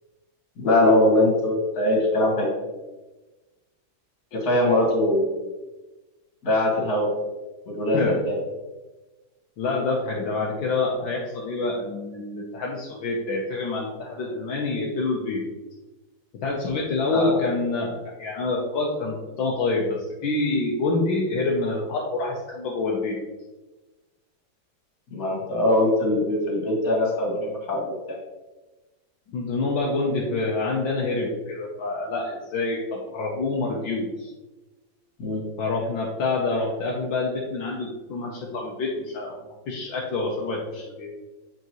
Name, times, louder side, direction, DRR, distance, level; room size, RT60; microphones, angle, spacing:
voice 1, 0.6-2.5 4.3-5.4 6.4-7.1 7.7-8.4 17.1-17.4 25.1-28.2 35.2-35.4, left 1 dB, 50° left, -3 dB, 2.6 m, -22 dB
voice 2, 9.6-15.5 16.4-23.2 29.3-34.3 35.6-39.4 39.7-41.1, left 3 dB, 75° left, -3 dB, 1.7 m, -27 dB
8.0 x 5.1 x 3.1 m, 1.1 s
omnidirectional pair, 2.1 m